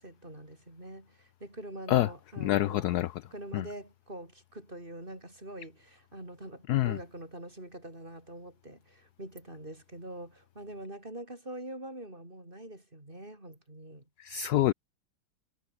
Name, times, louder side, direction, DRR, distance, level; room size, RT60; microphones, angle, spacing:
voice 1, 0.0-2.9 3.3-14.0, right 1 dB, 25° right, 6.5 m, -44 dB
voice 2, 2.4-3.1 3.5-3.6 6.7-7.0 14.2-14.7, left 14 dB, 75° left, 0.9 m, -26 dB
omnidirectional pair, 2.2 m